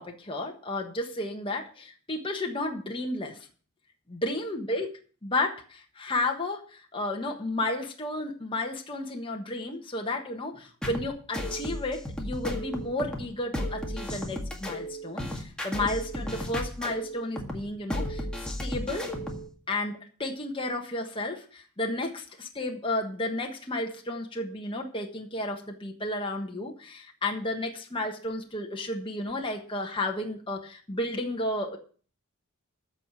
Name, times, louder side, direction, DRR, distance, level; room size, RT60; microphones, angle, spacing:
voice 1, 0.0-3.5 4.1-4.9 5.2-19.1 19.7-31.8, left 2 dB, 25° left, 1 dB, 1.4 m, -32 dB
sound 1, 10.8-19.5, equal, 5° left, 1.9 m, -34 dB
14.0 x 4.9 x 8.9 m, 0.42 s
head